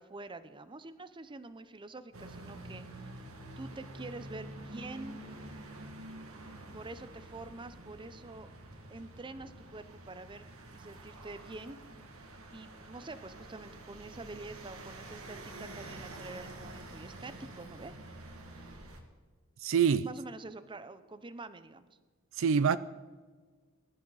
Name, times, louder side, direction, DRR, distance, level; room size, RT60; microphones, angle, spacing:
voice 1, 0.0-3.1 3.6-5.2 6.7-8.5 8.9-10.4 10.7-11.8 12.5-18.0 20.0-21.9, right 2 dB, 25° right, 0.7 m, -46 dB
sound 1, 2.1-19.0, right 1 dB, 85° right, 1.9 m, -48 dB
voice 2, 19.6-20.1 22.4-22.8, right 6 dB, 65° right, 0.4 m, -25 dB
20.0 x 11.0 x 4.1 m
head